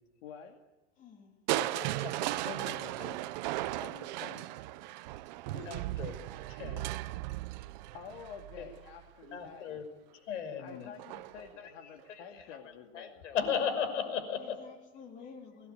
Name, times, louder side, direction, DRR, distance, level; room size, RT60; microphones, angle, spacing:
voice 1, 0.2-0.6 3.7-4.6 7.9-9.8 10.6-13.2, left 7 dB, 60° left, 4 dB, 2.5 m, -49 dB
voice 2, 1.0-1.3 5.5-6.0 9.3-9.4 10.6-11.2 13.3-13.6 14.3-15.7, left 5 dB, 20° left, 2 dB, 3.2 m, -50 dB
voice 3, 1.5-3.2 5.7-6.2 6.5-7.0 8.6-8.7 9.3-9.9 10.1-10.9 11.4-14.7, left 7 dB, 90° left, 9 dB, 5.9 m, -37 dB
Crushing, 1.5-9.4 11.0-11.5 12.0-12.1, right 17 dB, 40° right, 0.7 m, -37 dB
24.5 x 20.0 x 9.3 m, 1.2 s
supercardioid pair, 175°, 35 cm